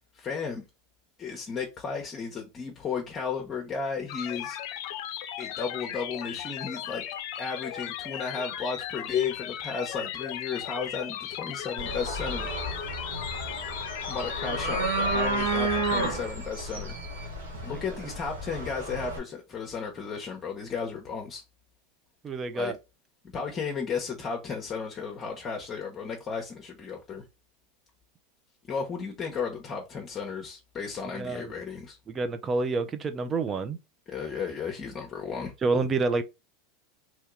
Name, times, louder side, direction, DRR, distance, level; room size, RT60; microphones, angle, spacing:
voice 1, 0.1-0.6 1.2-4.6 5.4-7.0 7.4-12.5 14.1-16.9 17.6-21.4 22.5-22.7 23.3-27.2 28.7-32.0 34.1-35.5, left 5 dB, 30° left, 0.9 m, -34 dB
sound 1, 4.1-16.1, left 11 dB, 60° left, 0.5 m, -37 dB
sound 2, 11.8-19.2, right 2 dB, 90° right, 1.3 m, -31 dB
voice 2, 22.2-22.8 31.2-31.5 32.1-33.8 35.6-36.2, right 3 dB, 30° right, 0.6 m, -28 dB
3.0 x 2.8 x 3.6 m
hypercardioid pair, 95°, 0 cm